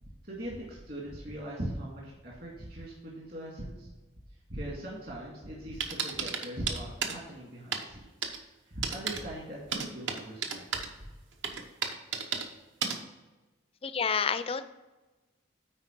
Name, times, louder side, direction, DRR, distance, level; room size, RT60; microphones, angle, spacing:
voice 1, 0.0-3.9 4.5-8.3 8.6-10.6, right 1 dB, 50° right, -4 dB, 2.0 m, -40 dB
sound 1, 5.8-7.2 7.7-7.8 8.2-8.4 8.8-9.2 9.7-10.9 11.4-12.4 12.8-13.0, right 6 dB, 70° right, 0.9 m, -32 dB
voice 2, 13.8-14.7, left 6 dB, 30° left, 12 dB, 0.4 m, -29 dB
9.7 x 4.3 x 4.5 m, 1.1 s
head